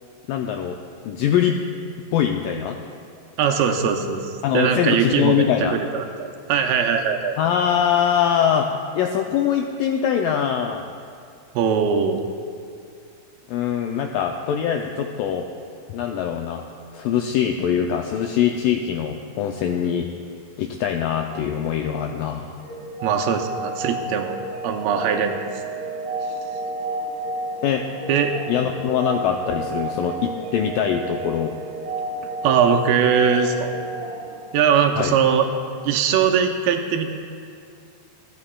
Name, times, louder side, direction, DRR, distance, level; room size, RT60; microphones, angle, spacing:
voice 1, 0.3-0.8 1.1-1.6 2.1-2.8 4.4-5.8 7.4-8.7 8.9-10.8 13.5-15.5 15.9-16.6 16.9-20.1 20.6-22.6 27.6-27.9 28.5-31.5 34.9-35.1, left 8 dB, 85° left, 3 dB, 1.9 m, -23 dB
voice 2, 3.4-7.4 11.6-12.2 23.0-24.4 24.6-25.4 28.1-28.3 32.4-33.7 34.5-35.5 35.8-37.1, right 7 dB, 85° right, 3 dB, 2.4 m, -21 dB
sound 1, 22.6-35.4, right 2 dB, 65° right, 2.8 m, -31 dB
22.5 x 9.5 x 2.3 m, 2.4 s
omnidirectional pair, 4.4 m